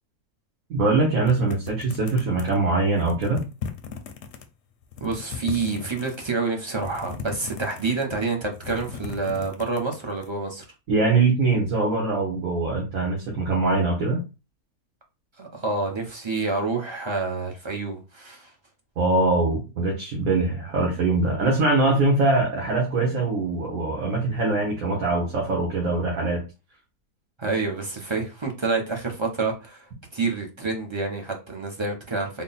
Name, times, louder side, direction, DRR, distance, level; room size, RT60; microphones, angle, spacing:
voice 1, 0.7-3.5 10.9-14.2 19.0-26.4, right 3 dB, 65° right, 1.4 m, -22 dB
sound 1, 1.3-2.6 3.0-4.4 4.8-6.3 6.8-8.1 8.5-10.3, left 7 dB, 60° left, 0.7 m, -37 dB
voice 2, 5.0-10.6 15.4-18.5 27.4-32.4, right 3 dB, 35° right, 0.4 m, -28 dB
3.7 x 2.2 x 4.0 m
omnidirectional pair, 1.6 m